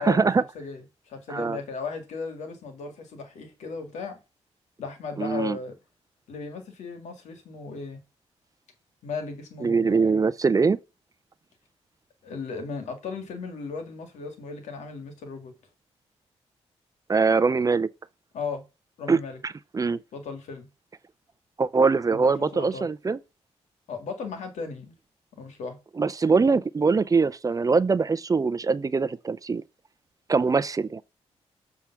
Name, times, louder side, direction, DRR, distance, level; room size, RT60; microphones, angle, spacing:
voice 1, 0.0-0.4 1.3-1.6 5.2-5.6 9.6-10.8 17.1-17.9 19.1-19.2 19.4-20.0 21.6-23.2 26.0-29.6 30.3-31.0, right 4 dB, 30° right, 0.5 m, -22 dB
voice 2, 0.5-4.2 4.8-5.8 6.3-8.0 9.0-10.2 12.2-15.5 18.3-18.6 19.0-19.4 20.1-20.7 22.1-22.9 23.9-24.9 25.4-25.8, left 4 dB, 85° left, 2.0 m, -36 dB
7.4 x 3.6 x 5.7 m
cardioid pair, 70°, 12 cm